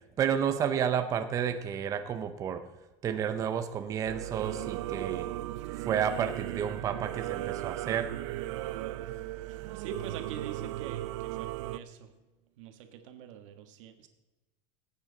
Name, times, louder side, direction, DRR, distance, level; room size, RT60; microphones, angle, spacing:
voice 1, 0.2-2.6 3.0-5.3 5.9-8.1, right 8 dB, 20° right, 8 dB, 0.6 m, -31 dB
Singing / Musical instrument, 4.0-11.8, right 16 dB, 70° right, 0.6 m, -36 dB
voice 2, 9.7-12.0 12.6-14.1, right 7 dB, 85° right, 7 dB, 1.5 m, -44 dB
18.5 x 9.0 x 3.9 m, 1.1 s
cardioid pair, 175°, 16 cm